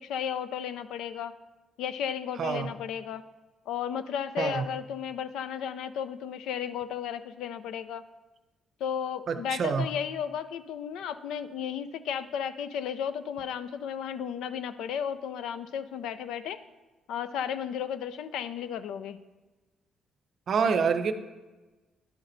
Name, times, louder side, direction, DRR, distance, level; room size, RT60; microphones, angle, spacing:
voice 1, 0.0-1.3 1.8-3.2 3.7-8.0 8.8-16.6 17.1-19.2, left 8 dB, 85° left, 12 dB, 0.4 m, -34 dB
voice 2, 2.4-2.7 4.4-4.6 9.3-9.8 20.5-21.1, right 6 dB, 55° right, 11 dB, 0.6 m, -26 dB
11.0 x 5.9 x 3.9 m, 1.2 s
cardioid pair, 90°, 0 cm